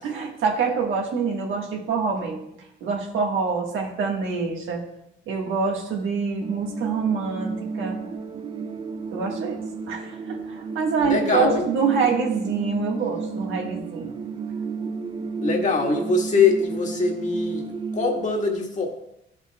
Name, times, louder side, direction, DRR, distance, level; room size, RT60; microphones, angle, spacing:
voice 1, 0.0-2.5 2.8-4.8 5.3-8.0 9.1-14.2, right 5 dB, 80° right, 1 dB, 1.5 m, -26 dB
sound 1, 6.4-18.3, right 4 dB, 25° right, 0.4 m, -32 dB
voice 2, 11.0-11.6 15.4-18.9, left 4 dB, 40° left, 1 dB, 1.5 m, -23 dB
12.0 x 5.7 x 2.3 m, 0.82 s
cardioid pair, 90°, 20 cm